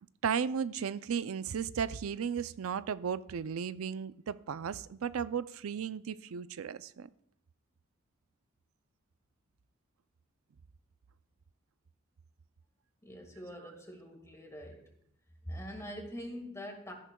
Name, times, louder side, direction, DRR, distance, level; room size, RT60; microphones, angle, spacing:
voice 1, 0.2-7.1, right 7 dB, 90° right, 0.4 m, -35 dB
voice 2, 13.0-14.9 15.4-16.9, equal, 15° left, 1.8 m, -44 dB
13.5 x 11.0 x 2.3 m
head